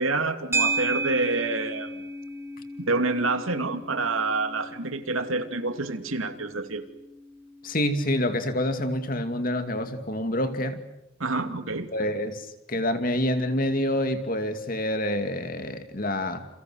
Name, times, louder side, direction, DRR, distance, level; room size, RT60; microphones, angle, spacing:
voice 1, 0.0-1.9 2.8-6.8 11.2-11.9, right 3 dB, 90° right, 2.6 m, -27 dB
sound 1, 0.5-9.0, right 3 dB, 10° right, 2.5 m, -34 dB
voice 2, 7.6-10.8 11.9-16.5, left 1 dB, 45° left, 2.6 m, -27 dB
29.5 x 29.0 x 6.5 m
head